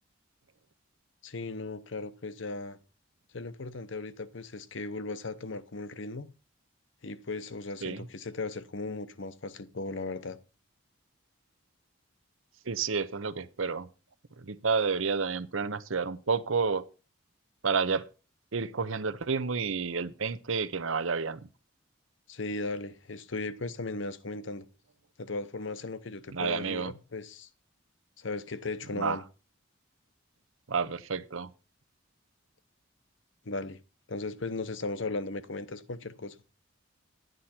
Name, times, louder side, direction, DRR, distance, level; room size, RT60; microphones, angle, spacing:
voice 1, 1.2-2.8 3.3-6.3 7.0-10.4 22.3-24.7 25.2-27.5 28.2-29.2 33.4-33.8 34.1-36.4, left 3 dB, 65° left, 0.8 m, -37 dB
voice 2, 12.7-13.9 14.4-16.9 17.6-18.0 18.5-21.5 26.3-26.9 29.0-29.2 30.7-31.5, right 5 dB, 75° right, 0.8 m, -30 dB
11.5 x 9.2 x 4.4 m
head